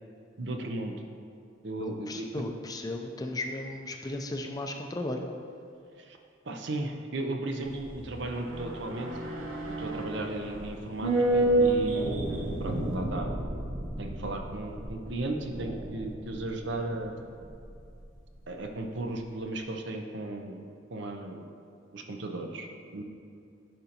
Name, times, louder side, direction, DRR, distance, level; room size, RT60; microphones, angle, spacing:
voice 1, 0.4-0.9 1.6-2.4 6.0-6.2 6.4-9.3 9.7-13.4 14.0-17.2 18.5-20.6 20.9-21.4 21.9-23.0, right 2 dB, 60° right, 4 dB, 0.6 m, -36 dB
voice 2, 1.8-5.2, left 2 dB, 20° left, 4 dB, 0.4 m, -35 dB
sound 1, 7.6-18.1 18.3-18.4, right 1 dB, 90° right, 0.9 m, -31 dB
10.5 x 5.1 x 2.9 m, 2.5 s
head